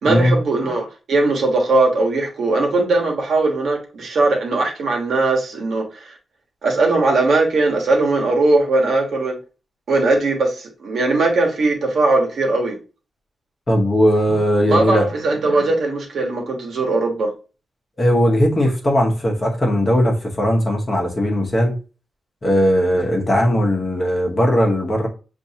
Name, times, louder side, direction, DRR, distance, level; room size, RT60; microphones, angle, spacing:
voice 1, 0.0-6.2 6.6-9.4 9.9-12.8 14.7-17.3, right 2 dB, 65° right, 1.2 m, -19 dB
voice 2, 13.7-15.0 18.0-21.7 22.4-25.1, equal, 25° left, 1.0 m, -18 dB
6.8 x 2.6 x 2.8 m
wide cardioid pair, 180°, 0 cm